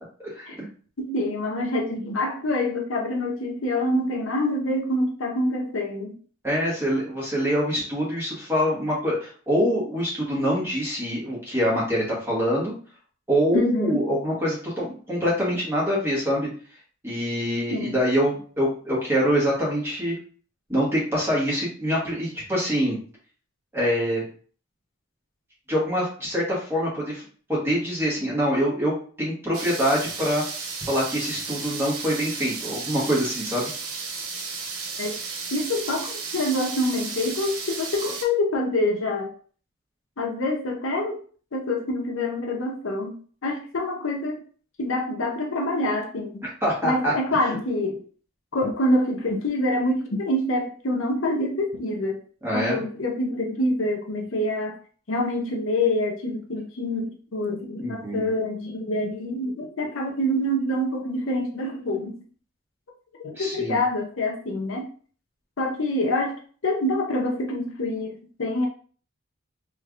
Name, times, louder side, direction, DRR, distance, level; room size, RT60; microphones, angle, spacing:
voice 1, 1.0-6.1 13.5-14.0 17.7-17.9 35.0-35.1 35.5-39.3 40.2-41.2 41.5-44.4 44.8-46.4 46.8-48.0 48.5-52.2 52.5-54.7 55.1-62.2 63.2-64.9 65.6-68.7, left 1 dB, 65° left, 1 dB, 0.6 m, -26 dB
voice 2, 6.4-12.7 13.3-16.5 17.0-20.1 20.7-23.0 23.7-24.3 25.7-27.2 27.5-30.4 30.9-33.7 46.4-47.1 52.4-52.8 57.8-58.3 63.3-63.8, equal, 10° right, -6 dB, 1.4 m, -25 dB
sound 1, 29.5-38.2, right 5 dB, 80° right, 0.7 m, -34 dB
3.3 x 3.2 x 2.4 m, 0.43 s
head